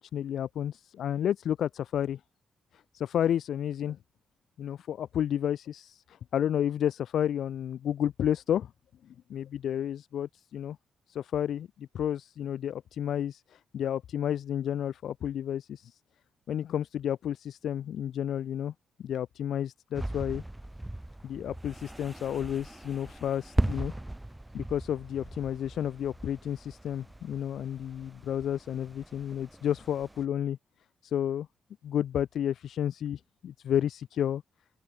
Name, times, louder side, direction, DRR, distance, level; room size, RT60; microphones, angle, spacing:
voice 1, 0.0-2.2 2.7-4.0 4.6-8.7 9.0-10.8 11.1-16.0 16.5-18.7 19.0-20.4 21.2-23.9 24.5-30.6 31.0-31.5 31.8-34.4, left 10 dB, 65° left, 0.9 m, -31 dB
sound 1, 19.9-30.3, right 1 dB, 5° right, 3.4 m, -38 dB
open air
wide cardioid pair, 175°, 0 cm